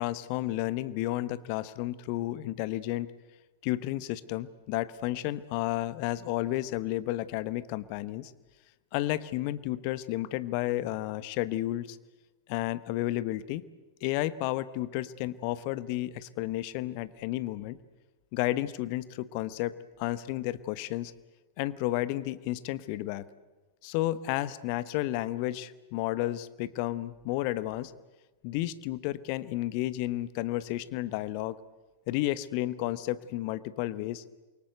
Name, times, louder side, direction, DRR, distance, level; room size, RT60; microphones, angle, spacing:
voice 1, 0.0-3.1 3.6-8.3 8.9-12.0 12.5-13.6 14.0-17.8 18.3-21.1 21.6-23.2 23.8-27.9 28.4-31.6 32.1-34.2, left 16 dB, 45° left, 16 dB, 1.1 m, -32 dB
28.5 x 23.5 x 8.1 m, 1.2 s
figure-of-eight pair, 90°, 0 cm